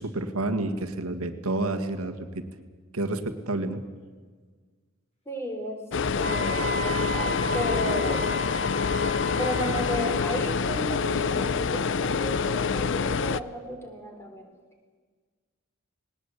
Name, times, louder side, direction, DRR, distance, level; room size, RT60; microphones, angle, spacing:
voice 1, 0.0-2.3 2.9-3.8, right 2 dB, 85° right, 6 dB, 1.7 m, -29 dB
voice 2, 5.2-5.8 6.2-8.3 9.4-14.4, equal, 10° left, 4 dB, 3.3 m, -33 dB
sound 1, 5.9-13.4, left 5 dB, 55° left, 0.5 m, -26 dB
Wind instrument woodwind instrument, 6.2-10.3, equal, 30° left, 5.0 m, -34 dB
20.0 x 19.0 x 8.3 m, 1.5 s
head